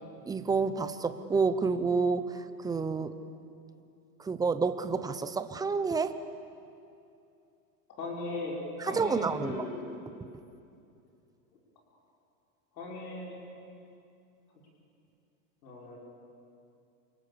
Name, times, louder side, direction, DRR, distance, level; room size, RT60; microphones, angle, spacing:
voice 1, 0.3-3.1 4.2-6.2 8.8-9.6 10.2-10.3, right 4 dB, 10° right, 10 dB, 0.7 m, -29 dB
voice 2, 8.0-9.9 12.7-13.4 15.6-16.0, left 2 dB, 85° left, -2 dB, 6.0 m, -38 dB
28.5 x 25.0 x 6.9 m, 2.6 s
hypercardioid pair, 130°, 49 cm